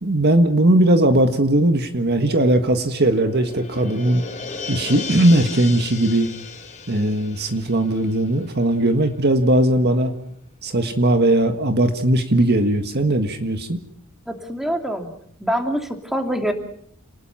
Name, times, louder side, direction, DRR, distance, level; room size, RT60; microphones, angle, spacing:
voice 1, 0.0-4.3 4.7-6.3 6.9-10.1 10.6-13.8, right 1 dB, 50° right, 7 dB, 1.7 m, -18 dB
sound 1, 2.3-9.0 9.3-9.4, left 5 dB, 35° left, 3.2 m, -36 dB
voice 2, 14.3-15.1 15.4-16.5, equal, ahead, 4 dB, 2.7 m, -25 dB
29.0 x 19.5 x 5.8 m, 0.65 s
head